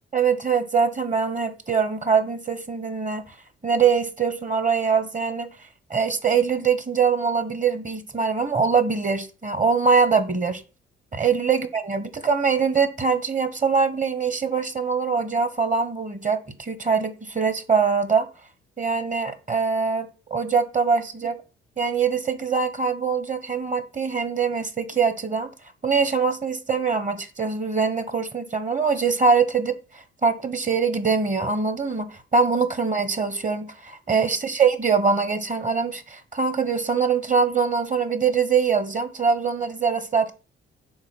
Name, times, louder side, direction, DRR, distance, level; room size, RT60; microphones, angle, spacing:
voice 1, 0.1-3.2 3.6-5.5 5.9-10.6 11.1-18.3 18.8-21.4 21.8-25.5 25.8-40.3, right 5 dB, 25° right, 1.1 m, -23 dB
4.9 x 4.1 x 5.8 m
figure-of-eight pair, 45°, 30 cm